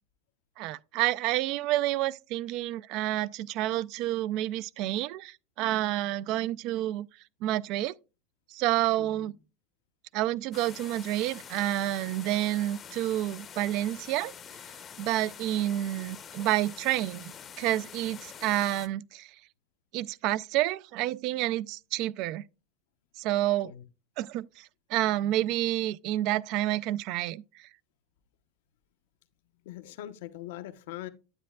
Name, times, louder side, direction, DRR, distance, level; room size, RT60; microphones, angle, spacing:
voice 1, 0.6-7.1 7.4-7.9 8.5-9.3 10.1-14.3 15.0-19.3 19.9-22.4 23.2-23.7 24.2-27.4, right 14 dB, 55° right, 0.3 m, -29 dB
voice 2, 9.0-9.3 23.6-23.8 29.7-31.1, left 13 dB, 80° left, 0.7 m, -42 dB
sound 1, 10.5-18.9, left 8 dB, 25° left, 0.6 m, -46 dB
9.7 x 8.2 x 2.3 m
supercardioid pair, 145°, 0 cm